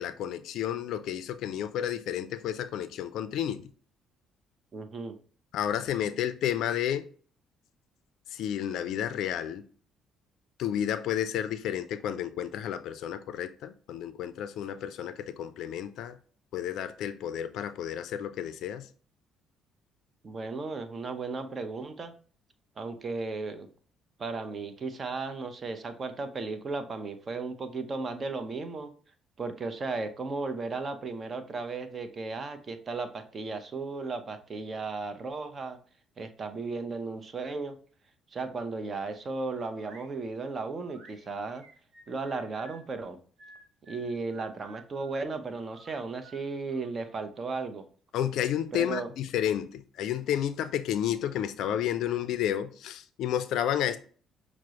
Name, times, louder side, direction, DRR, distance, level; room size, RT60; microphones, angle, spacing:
voice 1, 0.0-3.6 5.5-7.1 8.3-9.6 10.6-16.2 16.5-18.9 48.1-54.0, left 10 dB, 70° left, 0.3 m, -31 dB
voice 2, 4.7-5.2 20.2-22.1 22.8-23.7 24.2-28.9 29.4-35.8 36.2-37.8 38.3-41.6 42.1-43.2 43.9-47.8 48.7-49.1, right 3 dB, 40° right, 0.6 m, -35 dB
sound 1, 39.3-40.1 40.8-42.8 43.4-45.2 45.7-47.6, right 2 dB, 65° right, 0.9 m, -55 dB
5.9 x 2.0 x 2.8 m
supercardioid pair, 60°, 0 cm